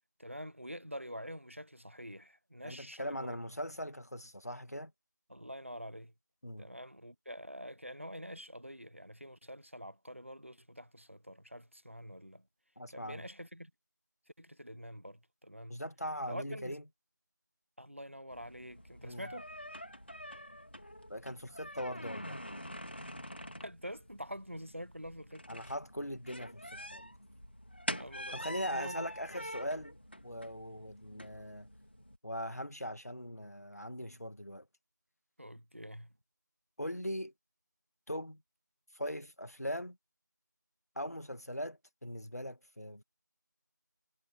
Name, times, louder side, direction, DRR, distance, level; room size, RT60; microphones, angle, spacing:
voice 1, 0.2-3.4 5.3-6.1 6.6-12.4 12.9-13.7 14.4-15.8 16.3-16.8 17.8-19.5 23.3-25.6 27.9-29.1 35.4-36.1, equal, 40° right, 1.1 m, -46 dB
voice 2, 2.6-4.9 6.4-6.7 12.8-13.3 15.7-16.8 19.0-19.3 21.1-22.4 25.5-26.6 26.9-27.1 28.3-31.7 32.2-34.7 36.8-37.3 38.1-38.4 38.9-40.0 41.0-43.0, equal, 55° left, 2.3 m, -40 dB
sound 1, 18.3-32.2, equal, 35° left, 3.6 m, -46 dB
figure-of-eight pair, 180°, 10 cm